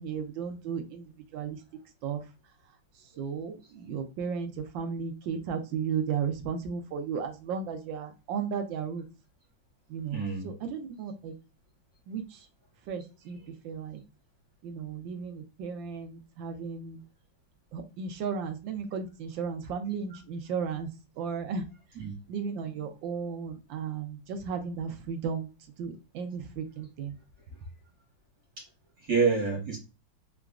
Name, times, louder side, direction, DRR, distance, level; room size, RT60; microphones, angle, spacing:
voice 1, 0.0-1.6 2.0-2.2 3.2-9.0 9.9-11.3 12.1-12.5 12.9-13.4 13.6-14.0 14.6-17.0 17.7-20.9 21.2-21.6 22.3-25.5 25.8-27.2, right 6 dB, 75° right, 7 dB, 1.4 m, -34 dB
voice 2, 10.1-10.5 22.0-22.1 28.6-28.7 29.0-29.8, right 5 dB, 50° right, -3 dB, 2.4 m, -27 dB
3.9 x 3.5 x 2.4 m, 0.30 s
omnidirectional pair, 2.2 m